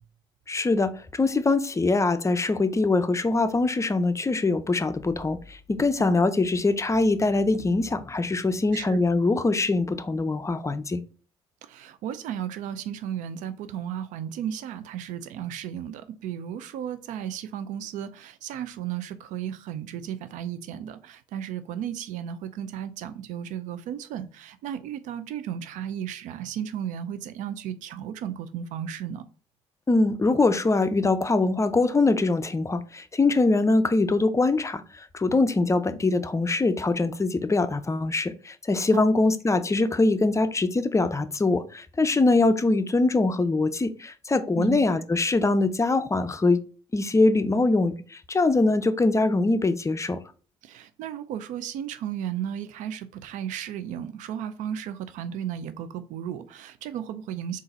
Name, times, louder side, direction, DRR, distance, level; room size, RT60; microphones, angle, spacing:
voice 1, 0.5-11.0 29.9-46.7 46.9-50.2, left 3 dB, 25° left, 0.5 m, -23 dB
voice 2, 11.6-29.2 38.9-39.1 44.6-44.8 50.6-57.6, right 9 dB, 80° right, 0.4 m, -34 dB
3.9 x 2.5 x 4.0 m
supercardioid pair, 55°, 13 cm